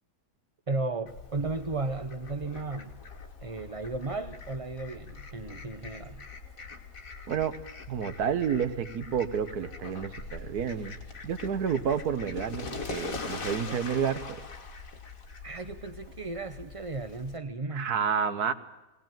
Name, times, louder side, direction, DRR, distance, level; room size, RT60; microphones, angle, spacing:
voice 1, 0.7-2.9 3.4-6.3 15.4-17.9, right 3 dB, 35° right, 10 dB, 0.5 m, -35 dB
Fowl, 1.1-17.4, left 4 dB, 65° left, 2.4 m, -42 dB
voice 2, 7.9-11.0 11.2-14.4 17.7-18.5, right 7 dB, 85° right, 11 dB, 1.6 m, -30 dB
21.0 x 18.0 x 9.1 m, 1.1 s
omnidirectional pair, 1.6 m